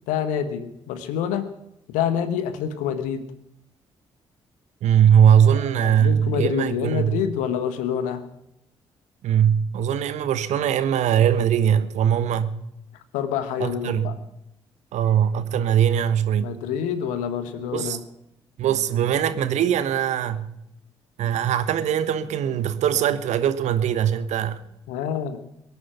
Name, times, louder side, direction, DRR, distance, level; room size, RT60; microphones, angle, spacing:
voice 1, 0.1-1.5 1.9-3.2 5.4-8.2 13.1-14.1 16.4-18.0 24.9-25.4, left 8 dB, 70° left, 11 dB, 1.4 m, -27 dB
voice 2, 4.8-7.2 9.2-12.5 13.6-14.1 14.9-16.5 17.7-18.0 18.6-20.5 21.2-24.6, right 9 dB, 60° right, 13 dB, 1.2 m, -21 dB
22.5 x 9.5 x 6.0 m, 0.82 s
figure-of-eight pair, 40°, 13 cm